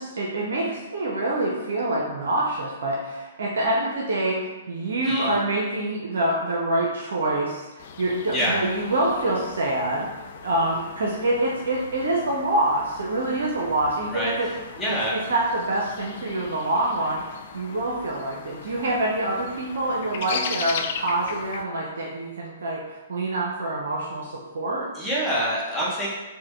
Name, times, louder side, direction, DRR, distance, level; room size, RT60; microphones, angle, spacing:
voice 1, 0.0-4.4 4.7-10.1 10.4-14.5 14.9-17.2 17.5-24.9, right 1 dB, 65° right, -2 dB, 0.5 m, -26 dB
voice 2, 5.0-5.4 8.3-8.6 14.1-15.2 24.9-26.1, equal, 5° left, -7 dB, 1.1 m, -26 dB
sound 1, 7.8-21.6, left 6 dB, 50° left, 0.3 m, -38 dB
4.4 x 2.1 x 3.2 m, 1.1 s
figure-of-eight pair, 120°, 0 cm